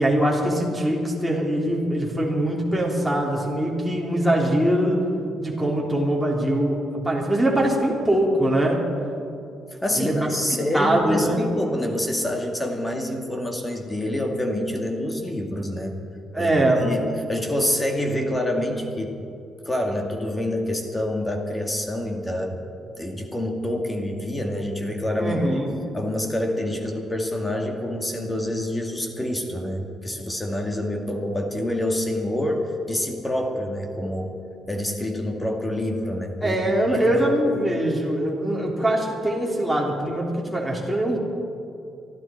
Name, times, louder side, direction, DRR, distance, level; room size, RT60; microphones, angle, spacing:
voice 1, 0.0-5.0 5.4-8.8 9.9-10.3 10.7-11.4 16.3-16.9 25.2-25.8 36.4-41.2, right 1 dB, ahead, -4 dB, 3.4 m, -22 dB
voice 2, 9.8-16.0 16.4-19.2 19.7-22.6 23.0-25.6 25.9-34.4 34.7-37.3, left 1 dB, 15° left, 2 dB, 2.1 m, -27 dB
23.5 x 13.5 x 4.5 m, 2.6 s
cardioid pair, 90°, 0 cm